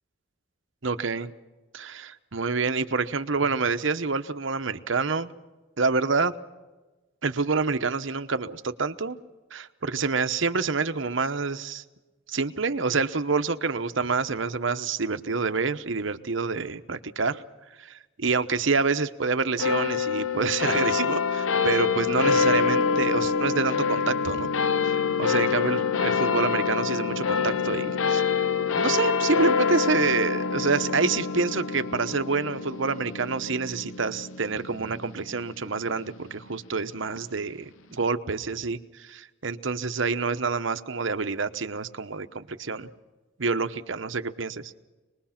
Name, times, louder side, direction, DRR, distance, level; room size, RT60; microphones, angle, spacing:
voice 1, 0.8-1.3 1.7-5.3 5.8-6.3 7.2-9.2 9.5-11.8 12.3-17.4 17.8-24.5 24.8-28.4 28.7-42.9 43.4-44.8, right 4 dB, 70° right, 10 dB, 1.0 m, -27 dB
sound 1, 19.6-36.3, left 5 dB, 80° left, 0.7 m, -26 dB
26.0 x 20.5 x 5.8 m, 1.2 s
head